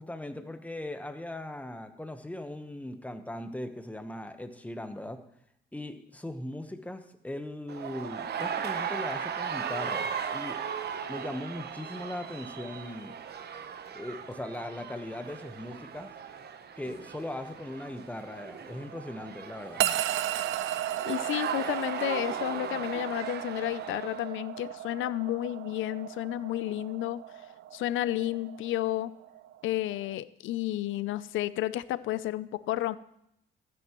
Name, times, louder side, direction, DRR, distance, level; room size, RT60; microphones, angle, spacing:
voice 1, 0.0-5.2 5.7-10.6 11.1-13.2 13.9-16.1 16.8-19.8, left 1 dB, 5° left, 7 dB, 1.1 m, -39 dB
sound 1, 7.7-24.3, right 7 dB, 55° right, 1.0 m, -37 dB
sound 2, 19.8-30.1, right 13 dB, 75° right, 0.5 m, -35 dB
voice 2, 21.1-27.2 27.7-29.1 29.6-33.0, left 14 dB, 80° left, 17 dB, 0.5 m, -31 dB
14.5 x 9.5 x 3.1 m, 0.77 s
cardioid pair, 90°, 20 cm